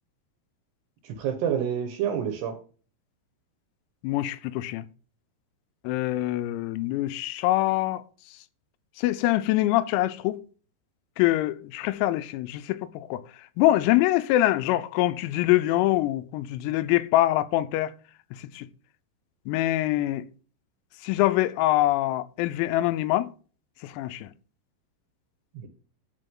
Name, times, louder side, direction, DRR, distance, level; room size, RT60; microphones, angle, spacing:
voice 1, 1.0-2.6 25.5-25.7, right 8 dB, 70° right, 2.8 m, -28 dB
voice 2, 4.0-4.9 5.9-8.0 9.0-10.4 11.2-13.2 13.6-17.9 18.4-18.7 19.5-20.3 21.0-23.3 23.8-24.3, left 15 dB, 90° left, 3.4 m, -24 dB
13.5 x 5.0 x 3.8 m
omnidirectional pair, 6.0 m